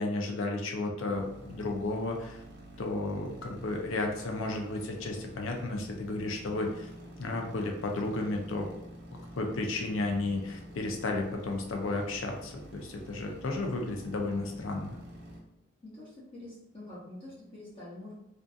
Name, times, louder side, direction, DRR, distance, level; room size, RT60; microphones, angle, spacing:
voice 1, 0.0-2.4 2.8-6.9 7.2-8.7 9.3-15.0, left 2 dB, 75° left, 2 dB, 0.5 m, -33 dB
sound 1, 1.1-15.4, equal, 55° right, 0.6 m, -49 dB
voice 2, 15.8-18.1, left 1 dB, 25° left, -8 dB, 0.7 m, -46 dB
2.5 x 2.5 x 2.3 m, 0.88 s
head